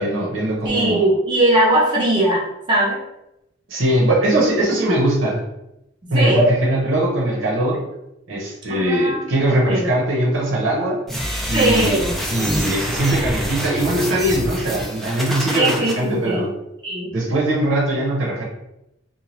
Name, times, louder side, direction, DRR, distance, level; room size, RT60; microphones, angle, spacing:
voice 1, 0.0-1.1 3.7-5.4 6.1-7.8 8.3-11.0 11.5-16.5 17.1-18.4, right 1 dB, 80° right, -4 dB, 0.8 m, -21 dB
voice 2, 0.6-3.0 6.1-6.5 8.7-9.9 11.5-12.1 15.5-16.5 16.8-17.1, right 1 dB, 25° right, -4 dB, 0.7 m, -19 dB
sound 1, 11.1-15.9, equal, ahead, 0.4 m, -26 dB
2.7 x 2.3 x 3.1 m, 0.86 s
head